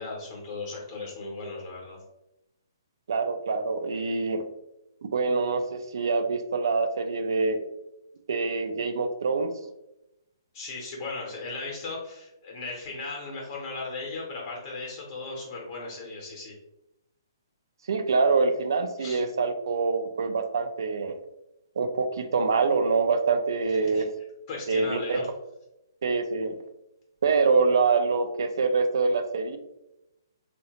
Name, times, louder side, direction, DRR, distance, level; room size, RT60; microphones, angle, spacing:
voice 1, 0.0-2.0 10.5-16.6 19.0-19.2 23.9-24.0 24.5-25.3, left 3 dB, 40° left, -2 dB, 0.6 m, -37 dB
voice 2, 3.1-4.4 5.1-7.6 8.3-9.5 17.9-21.2 21.8-24.1 24.7-25.2 26.0-26.6 27.2-29.6, right 4 dB, 70° right, 8 dB, 0.4 m, -25 dB
2.7 x 2.1 x 2.8 m, 0.89 s
hypercardioid pair, 150°, 2 cm